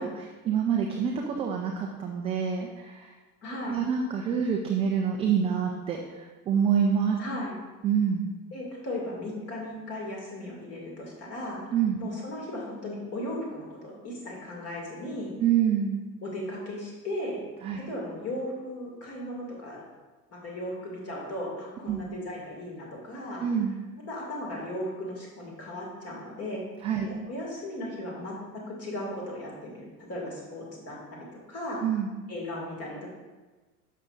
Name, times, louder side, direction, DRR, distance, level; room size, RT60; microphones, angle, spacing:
voice 1, 0.0-3.1 3.7-7.2 7.8-8.3 11.7-12.0 15.4-16.0 17.6-17.8 21.9-22.0 23.4-23.7 26.8-27.1 31.8-32.1, right 7 dB, 15° right, 1 dB, 0.3 m, -27 dB
voice 2, 3.4-3.8 7.2-7.5 8.5-11.7 12.0-15.3 16.2-17.4 17.7-19.8 20.3-23.4 24.1-26.6 27.0-31.8 32.3-33.1, left 1 dB, 30° left, -2 dB, 2.4 m, -36 dB
10.5 x 6.4 x 2.6 m, 1.2 s
figure-of-eight pair, 75°, 44 cm